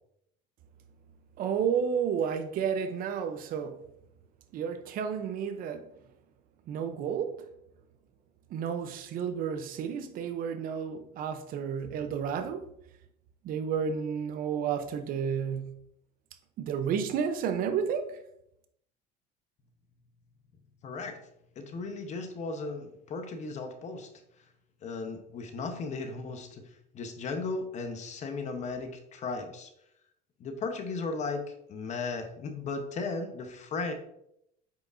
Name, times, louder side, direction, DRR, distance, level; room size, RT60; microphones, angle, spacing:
voice 1, 1.4-3.8 4.5-5.8 6.7-7.4 8.5-12.6 13.4-15.8 16.6-18.1, right 7 dB, 45° right, 0.7 m, -31 dB
voice 2, 20.8-21.2 21.6-24.1 24.8-29.7 30.4-31.4 31.7-33.9, left 3 dB, 35° left, 0.9 m, -36 dB
8.2 x 4.9 x 2.6 m
cardioid pair, 150°, 19 cm